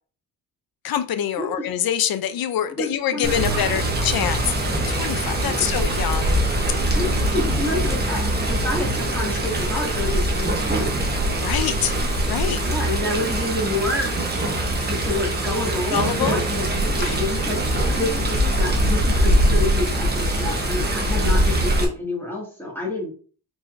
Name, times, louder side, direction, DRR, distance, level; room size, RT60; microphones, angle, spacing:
voice 1, 0.8-6.4 11.4-11.9 12.3-12.6 15.9-16.4 17.0-17.2, left 10 dB, 60° left, 0.6 m, -25 dB
voice 2, 1.4-1.7 2.8-3.9 5.4-5.7 6.9-10.9 12.7-14.2 14.4-17.6 18.0-23.1, left 2 dB, 5° left, 2.1 m, -29 dB
Water, 3.2-21.8, right 1 dB, 25° right, 1.1 m, -22 dB
4.6 x 4.3 x 2.6 m
cardioid pair, 125°, 41 cm